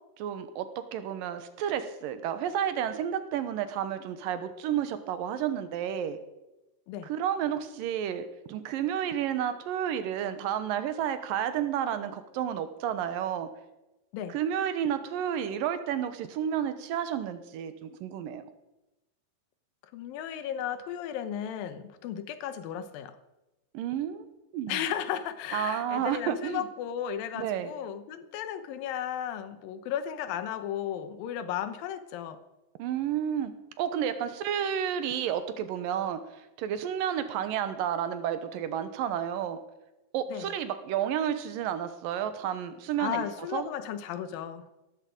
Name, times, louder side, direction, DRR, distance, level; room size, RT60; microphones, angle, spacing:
voice 1, 0.2-6.2 7.0-13.5 14.3-18.4 23.7-24.3 24.5-24.8 25.5-26.7 27.4-27.7 32.8-39.6 40.1-43.2 43.5-43.7, right 9 dB, 80° right, 11 dB, 2.6 m, -31 dB
voice 2, 19.9-23.2 24.7-32.4 40.3-40.5 43.0-44.7, left 9 dB, 80° left, 11 dB, 2.8 m, -35 dB
18.5 x 14.0 x 5.3 m, 1.0 s
omnidirectional pair, 4.1 m